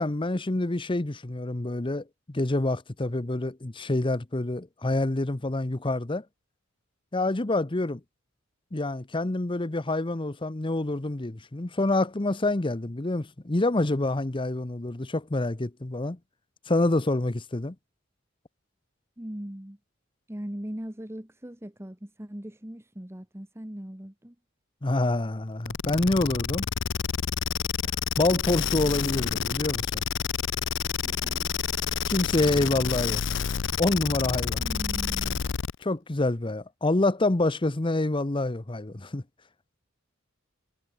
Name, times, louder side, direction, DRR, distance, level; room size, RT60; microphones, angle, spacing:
voice 1, 0.0-6.2 7.1-8.0 8.7-16.2 16.7-17.7 24.8-26.7 28.2-30.0 32.1-34.6 35.8-39.2, left 2 dB, 25° left, 0.9 m, -27 dB
voice 2, 19.2-19.8 20.3-24.3 31.0-31.5 34.6-35.4, equal, 15° right, 1.3 m, -39 dB
sound 1, 25.7-35.8, left 8 dB, 65° left, 0.5 m, -29 dB
head